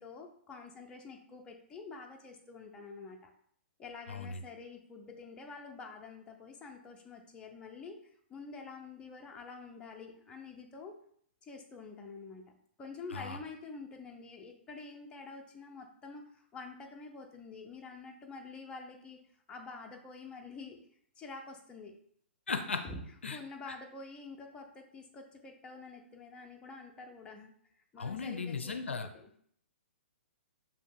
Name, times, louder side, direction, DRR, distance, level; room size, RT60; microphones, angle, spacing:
voice 1, 0.0-3.3 3.8-11.0 11.4-12.4 12.8-19.2 19.5-20.8 21.2-21.9 22.7-23.0 23.3-27.5 27.9-29.3, left 4 dB, 15° left, 2 dB, 0.5 m, -48 dB
voice 2, 4.1-4.4 13.1-13.4 22.5-22.8 23.2-23.4 28.0-29.1, left 5 dB, 75° left, 7 dB, 0.4 m, -36 dB
7.0 x 2.8 x 2.3 m, 0.63 s
figure-of-eight pair, 120°, 7 cm